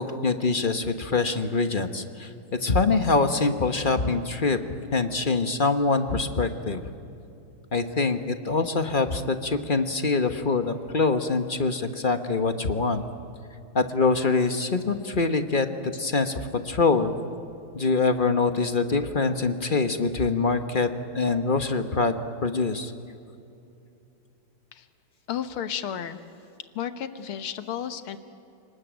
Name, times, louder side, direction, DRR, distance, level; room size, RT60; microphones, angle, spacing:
voice 1, 0.0-4.6 4.9-6.8 7.7-13.1 13.7-17.1 17.7-22.9, left 4 dB, 35° left, 8 dB, 0.9 m, -24 dB
voice 2, 25.3-26.2 26.8-28.2, left 9 dB, 85° left, 10 dB, 2.1 m, -32 dB
29.0 x 20.0 x 9.1 m, 2.8 s
omnidirectional pair, 2.3 m